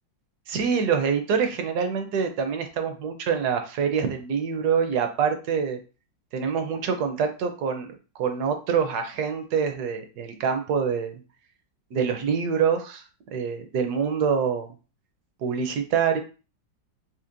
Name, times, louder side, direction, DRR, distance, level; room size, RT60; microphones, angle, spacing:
voice 1, 0.5-5.8 6.3-7.9 8.2-11.1 11.9-13.0 13.3-14.7 15.4-16.2, right 6 dB, 70° right, 6 dB, 1.1 m, -25 dB
4.4 x 2.9 x 2.5 m, 0.34 s
omnidirectional pair, 2.0 m